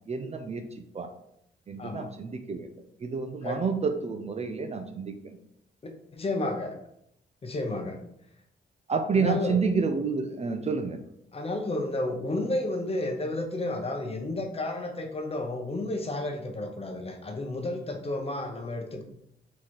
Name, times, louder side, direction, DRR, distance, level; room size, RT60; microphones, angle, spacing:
voice 1, 0.1-1.1 1.7-2.7 3.0-5.4 8.9-11.0, right 5 dB, 35° right, 6 dB, 0.4 m, -29 dB
voice 2, 1.8-2.1 3.4-3.6 5.8-6.8 7.4-8.0 9.1-9.6 11.3-19.0, left 2 dB, 30° left, 4 dB, 0.7 m, -32 dB
4.0 x 3.1 x 4.2 m, 0.77 s
cardioid pair, 120°, 19 cm